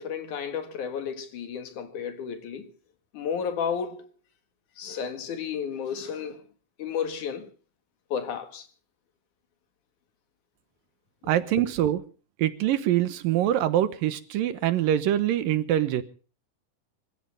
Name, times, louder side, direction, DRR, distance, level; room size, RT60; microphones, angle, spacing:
voice 1, 0.0-2.7 3.1-4.1 4.8-6.4 6.8-7.5 8.1-8.7, left 7 dB, 65° left, 3.1 m, -32 dB
voice 2, 11.3-12.0 12.4-16.0, right 12 dB, 85° right, 2.9 m, -24 dB
26.0 x 15.0 x 3.4 m
omnidirectional pair, 3.9 m